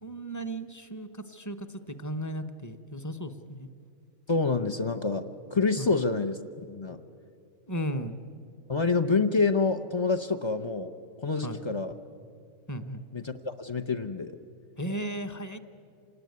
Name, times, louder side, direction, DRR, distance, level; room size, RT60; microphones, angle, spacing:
voice 1, 0.0-3.7 5.8-5.9 7.7-8.2 11.4-11.6 12.7-13.0 14.8-15.6, right 1 dB, 15° left, 8 dB, 0.8 m, -35 dB
voice 2, 4.3-6.4 6.7-7.0 8.7-10.9 11.2-12.0 13.1-14.4, left 4 dB, 50° left, 6 dB, 0.3 m, -27 dB
27.0 x 19.5 x 9.4 m, 2.5 s
omnidirectional pair, 1.5 m